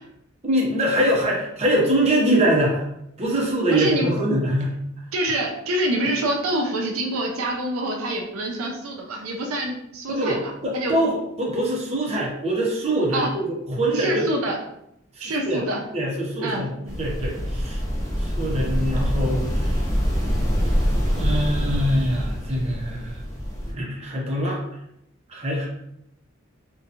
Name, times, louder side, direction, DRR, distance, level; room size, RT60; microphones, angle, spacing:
voice 1, 0.4-2.8 3.2-4.7 10.1-14.3 15.1-15.6 15.9-16.7 17.0-17.8 18.2-19.8 21.1-23.2 23.7-24.6 25.3-25.7, right 1 dB, 30° right, -3 dB, 0.6 m, -23 dB
voice 2, 3.7-4.1 5.1-10.9 13.1-13.3 13.9-14.6 15.2-15.8 16.4-17.0, right 1 dB, 90° right, 1 dB, 0.5 m, -26 dB
sound 1, 16.9-23.7, equal, 15° left, 0.5 m, -25 dB
2.7 x 2.2 x 2.4 m, 0.79 s
head